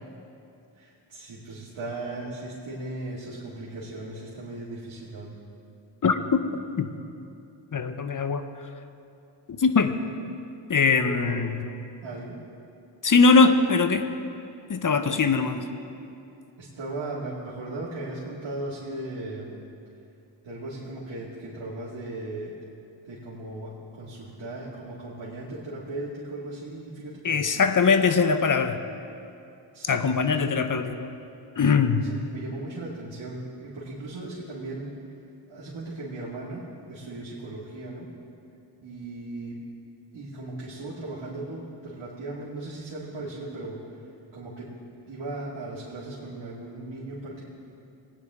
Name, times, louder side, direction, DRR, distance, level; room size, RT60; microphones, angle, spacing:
voice 1, 0.8-5.4 11.0-11.4 12.0-12.4 15.1-15.5 16.6-19.5 20.4-22.5 23.1-27.4 29.7-30.5 32.1-35.0 35.5-38.1 38.8-39.6 40.1-44.0 44.3-44.7 45.1-47.5, right 2 dB, 70° right, -8 dB, 2.3 m, -37 dB
voice 2, 6.0-6.4 6.8-6.9 7.7-8.5 9.6-10.0 10.7-11.6 13.0-14.0 14.7-15.6 27.2-28.8 29.9-31.1 31.6-32.1, left 4 dB, 40° left, 9 dB, 0.9 m, -21 dB
19.5 x 9.4 x 3.7 m, 2.6 s
cardioid pair, 55°, 48 cm